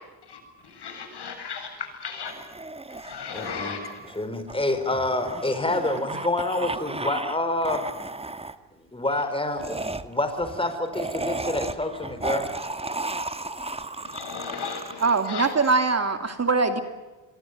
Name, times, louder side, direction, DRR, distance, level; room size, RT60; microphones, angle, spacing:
voice 1, 0.2-2.3 2.9-4.0 14.0-15.5, left 6 dB, 55° left, 7.7 m, -36 dB
sound 1, 2.3-7.4 7.6-8.6 9.6-15.7, right 2 dB, 10° right, 1.5 m, -34 dB
voice 2, 3.3-3.8 4.2-7.9 8.9-9.8 10.0-12.5, left 2 dB, 10° left, 4.5 m, -27 dB
voice 3, 15.0-16.8, right 4 dB, 30° right, 2.8 m, -22 dB
25.5 x 23.0 x 9.3 m
supercardioid pair, 70°, 48 cm